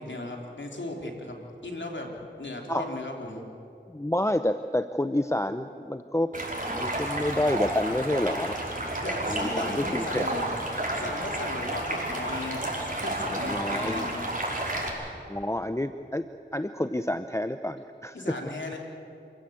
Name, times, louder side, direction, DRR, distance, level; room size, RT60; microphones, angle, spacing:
voice 1, 0.0-2.1 2.4-3.4 9.0-10.5 10.9-12.7 13.0-14.3 18.1-18.8, left 2 dB, 80° left, 1 dB, 3.4 m, -36 dB
voice 2, 3.9-6.3 6.7-8.6 9.3-10.3 13.3-14.1 15.3-16.2 16.5-18.4, left 1 dB, 15° left, 10 dB, 0.7 m, -29 dB
Stream, 6.3-14.9, right 1 dB, 45° right, 5.2 m, -31 dB
27.5 x 16.0 x 8.7 m, 2.7 s
wide cardioid pair, 45°, 19 cm